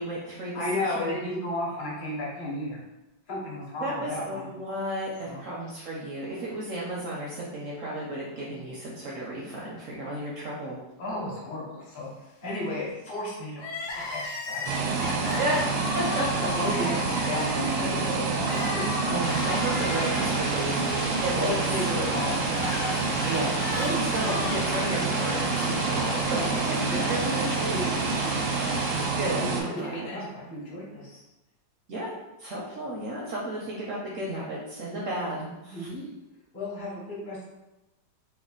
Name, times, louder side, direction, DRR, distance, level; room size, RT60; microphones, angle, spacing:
voice 1, 0.0-1.3 3.8-10.8 15.4-16.9 19.1-21.0 21.2-21.6 23.3-27.4 27.8-28.1 29.2-30.1 31.9-32.1 32.4-35.9, right 1 dB, 70° right, -4 dB, 0.7 m, -33 dB
voice 2, 0.5-2.8 3.3-4.5 5.2-5.4 11.0-13.6 13.9-15.4 16.4-19.2 21.3-22.5 22.9-23.3 23.9-24.5 26.3-26.6 26.9-29.1 29.4-31.2 35.7-36.1 36.5-37.4, left 1 dB, 40° left, -5 dB, 0.7 m, -34 dB
Crying sobbing, 13.6-27.7 28.0-28.1 29.1-30.2, left 2 dB, 70° left, 1.2 m, -37 dB
sound 1, 14.6-29.6, right 4 dB, 85° right, 1.3 m, -28 dB
sound 2, 19.2-29.1, left 1 dB, 90° left, 0.4 m, -36 dB
3.2 x 2.2 x 3.7 m, 0.98 s
omnidirectional pair, 2.0 m